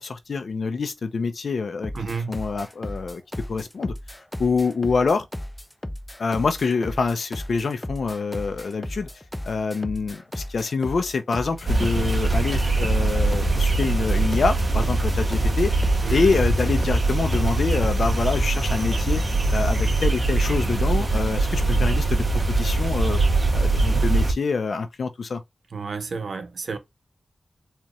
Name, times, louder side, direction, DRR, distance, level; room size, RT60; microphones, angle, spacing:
voice 1, 0.0-1.9 2.3-3.2 3.5-3.9 4.4-5.3 6.2-9.1 9.4-15.7 16.1-19.2 19.5-23.2 23.5-25.4, left 4 dB, 80° left, 0.6 m, -26 dB
sound 1, 1.8-18.1, left 1 dB, 10° left, 0.4 m, -35 dB
voice 2, 1.9-2.3 16.0-16.3 25.7-26.8, right 4 dB, 80° right, 0.8 m, -31 dB
sound 2, 11.6-24.3, right 2 dB, 40° right, 1.9 m, -22 dB
4.3 x 2.4 x 3.0 m
wide cardioid pair, 105°, 0 cm